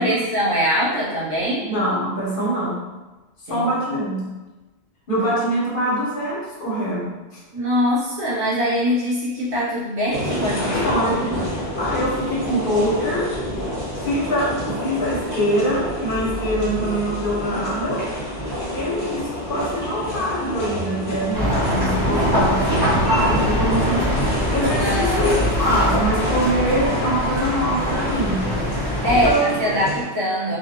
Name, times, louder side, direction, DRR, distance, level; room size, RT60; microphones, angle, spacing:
voice 1, 0.0-1.6 3.5-3.7 5.1-5.3 7.5-11.4 24.8-25.3 29.0-30.6, equal, 60° right, -7 dB, 1.0 m, -23 dB
voice 2, 1.6-2.8 3.5-4.3 5.1-7.4 10.7-11.3 11.8-13.4 14.0-18.1 18.7-28.5 29.1-29.5, equal, 55° left, -5 dB, 0.8 m, -24 dB
sound 1, 10.1-30.0, equal, 20° left, 0.7 m, -28 dB
sound 2, 21.3-29.3, equal, ahead, 1.3 m, -23 dB
2.6 x 2.2 x 2.6 m, 1.1 s
omnidirectional pair, 1.1 m